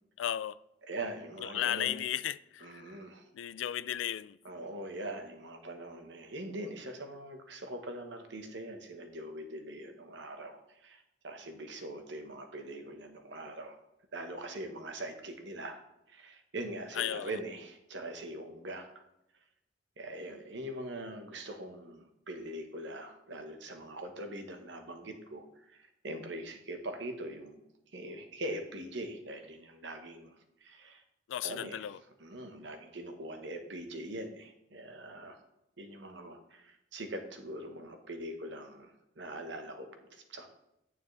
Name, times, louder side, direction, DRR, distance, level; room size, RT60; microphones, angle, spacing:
voice 1, 0.2-0.6 1.4-3.0 3.3-4.4 16.9-17.4 31.3-32.0, left 11 dB, 85° left, 0.3 m, -35 dB
voice 2, 0.9-1.9 2.6-3.2 4.4-13.8 14.1-15.8 16.1-18.9 20.0-27.6 27.9-30.3 30.6-31.0 31.4-31.9 32.2-35.4 35.8-40.5, right 1 dB, 70° right, 1.2 m, -42 dB
9.4 x 7.0 x 3.3 m
head